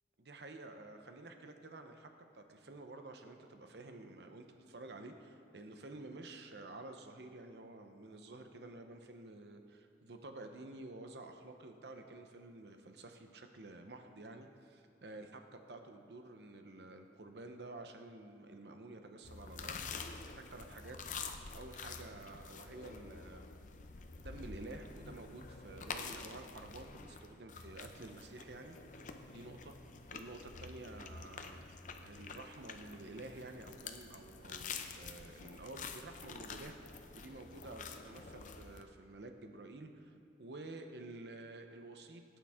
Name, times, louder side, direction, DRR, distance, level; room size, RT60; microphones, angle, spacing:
voice 1, 0.2-21.0 21.5-23.5 24.2-28.8 29.3-29.7 30.1-42.2, right 2 dB, 70° right, 6 dB, 0.9 m, -51 dB
sound 1, 19.2-38.8, left 5 dB, 45° left, 0.6 m, -48 dB
17.5 x 9.0 x 3.7 m, 2.5 s
head